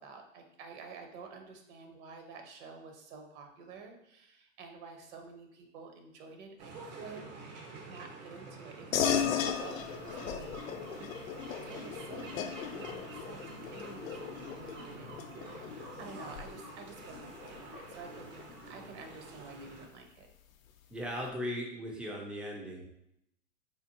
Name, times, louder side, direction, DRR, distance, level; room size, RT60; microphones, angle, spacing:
voice 1, 0.0-10.7 11.6-20.3, right 4 dB, 55° right, 4 dB, 1.0 m, -50 dB
sound 1, 6.6-19.9, right 3 dB, 75° right, 1.2 m, -48 dB
sound 2, 8.9-18.8, left 8 dB, 90° left, 0.5 m, -37 dB
voice 2, 20.9-22.9, equal, 5° right, -1 dB, 0.3 m, -38 dB
4.3 x 2.5 x 2.8 m, 0.78 s
hypercardioid pair, 110°, 39 cm